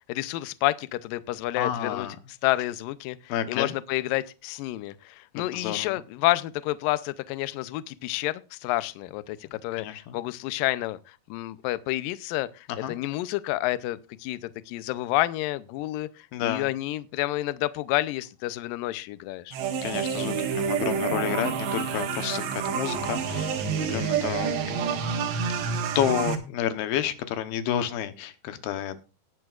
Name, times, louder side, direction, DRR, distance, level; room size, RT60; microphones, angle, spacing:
voice 1, 0.1-2.1 2.4-19.6, left 17 dB, 90° left, 1.9 m, -29 dB
voice 2, 1.6-2.2 3.3-3.7 5.4-6.0 9.8-10.2 12.7-13.0 16.3-16.7 19.8-24.9 25.6-29.0, left 10 dB, 75° left, 2.8 m, -30 dB
sound 1, 19.5-26.4, right 6 dB, 85° right, 3.8 m, -28 dB
19.0 x 9.2 x 2.4 m
omnidirectional pair, 4.8 m